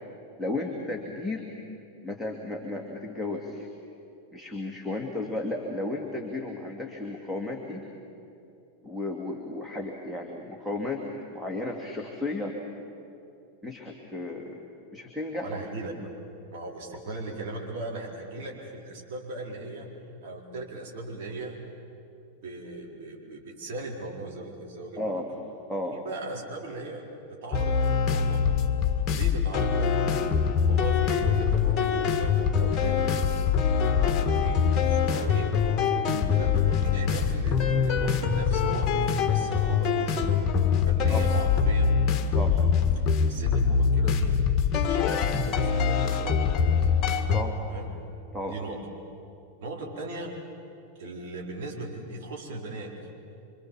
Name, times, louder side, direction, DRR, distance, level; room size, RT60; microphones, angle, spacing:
voice 1, 0.4-1.5 2.0-3.7 4.3-7.8 8.8-11.0 11.3-12.5 13.6-15.6 17.1-17.2 25.0-25.3 25.7-26.0 35.1-35.3 36.1-36.4 41.1-41.2 42.3-42.6 47.3-47.6 48.3-48.6, left 2 dB, ahead, 0 dB, 2.4 m, -34 dB
voice 2, 15.4-15.9 16.5-19.9 20.2-21.6 22.4-25.1 25.9-28.5 29.1-30.0 30.7-33.2 33.6-35.6 36.3-40.3 40.8-41.9 43.0-44.4 44.8-46.9 47.6-47.9 48.5-48.8 49.6-50.4 51.0-52.9, right 2 dB, 50° right, -1 dB, 4.4 m, -38 dB
Mysterious and jazzy, 27.5-47.4, left 6 dB, 30° left, 1.9 m, -24 dB
26.5 x 26.0 x 7.4 m, 2.7 s
figure-of-eight pair, 90°, 0 cm